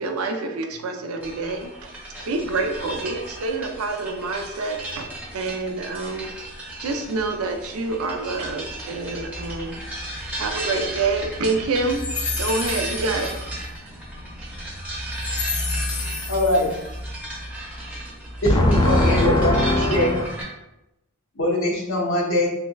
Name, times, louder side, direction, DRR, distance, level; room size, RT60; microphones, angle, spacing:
voice 1, 0.0-1.7 2.2-6.3 6.8-9.7 10.4-12.0 12.4-13.3, right 3 dB, 85° right, 4 dB, 0.5 m, -27 dB
sound 1, 1.2-20.4, right 1 dB, 10° right, 0.8 m, -34 dB
voice 2, 12.4-12.8 15.2-16.3 18.5-20.2, left 1 dB, 20° left, 2 dB, 0.4 m, -22 dB
voice 3, 16.3-16.7 18.4-19.6 19.8-20.2 21.3-22.5, left 1 dB, 65° left, -2 dB, 0.9 m, -22 dB
3.6 x 3.1 x 2.3 m, 0.90 s
head